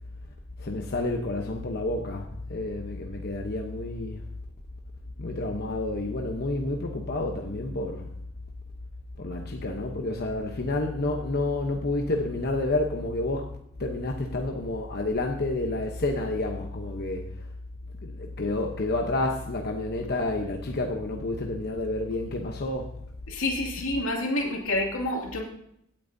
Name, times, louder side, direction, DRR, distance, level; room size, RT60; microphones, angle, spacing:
voice 1, 0.6-4.3 5.2-8.1 9.2-13.5 13.8-17.5 18.0-22.9, left 2 dB, 50° left, 0.9 m, -29 dB
voice 2, 23.3-25.4, left 1 dB, 70° left, 2.5 m, -28 dB
17.0 x 8.8 x 2.7 m
head